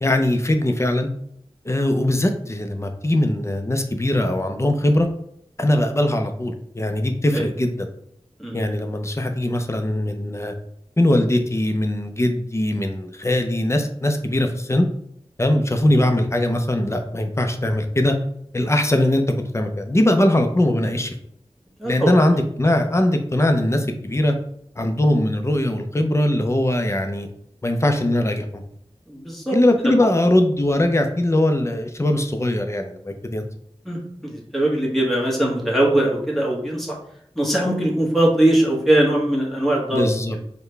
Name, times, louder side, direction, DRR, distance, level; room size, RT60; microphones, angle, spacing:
voice 1, 0.0-1.1 1.7-5.1 5.6-7.7 8.5-10.5 11.0-14.9 15.4-18.2 18.5-21.1 21.8-24.4 24.8-27.3 27.6-28.6 29.5-33.4 39.9-40.4, left 1 dB, 25° left, 5 dB, 0.5 m, -21 dB
voice 2, 8.4-8.7 16.0-16.1 21.8-22.2 29.1-29.6 33.8-37.0 37.4-40.1, right 1 dB, ahead, -3 dB, 1.1 m, -21 dB
4.5 x 2.2 x 3.3 m, 0.70 s
wide cardioid pair, 55°, 11 cm